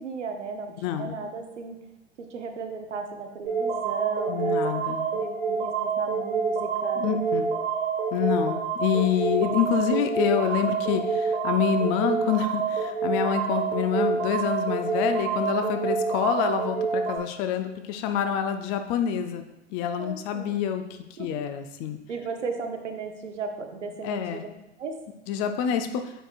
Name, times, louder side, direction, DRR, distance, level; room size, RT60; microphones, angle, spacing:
voice 1, 0.0-1.8 2.2-4.6 5.1-7.0 20.0-20.6 21.2-21.3 22.1-24.5 24.8-24.9, right 4 dB, 80° right, 4 dB, 0.9 m, -35 dB
voice 2, 0.8-1.2 4.3-5.0 7.0-7.5 8.1-19.4 19.7-22.0 24.0-24.4 25.3-26.1, left 8 dB, 35° left, 7 dB, 0.6 m, -27 dB
sound 1, 3.4-17.2, right 5 dB, 55° right, 1.7 m, -27 dB
8.6 x 5.0 x 2.4 m, 0.91 s
figure-of-eight pair, 95°, 36 cm